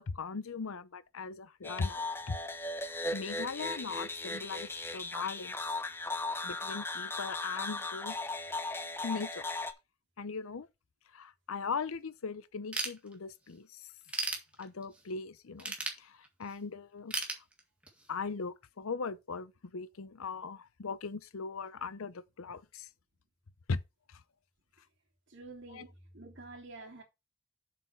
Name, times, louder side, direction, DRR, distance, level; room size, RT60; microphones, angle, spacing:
voice 1, 0.0-2.4 3.1-5.6 6.4-8.2 9.0-9.4 10.2-10.7 11.1-13.7 14.6-17.2 18.1-22.9 23.7-23.8 24.1-24.2 25.7-25.8, left 4 dB, 75° left, 0.6 m, -39 dB
sound 1, 1.6-9.7, left 2 dB, 10° left, 0.6 m, -37 dB
Ratchet pawl / Tools, 12.7-13.5 13.9-15.0 15.6-16.6 17.1-18.1, right 2 dB, 5° right, 1.9 m, -36 dB
voice 2, 25.3-27.0, right 3 dB, 55° right, 3.2 m, -49 dB
7.5 x 6.8 x 4.6 m
head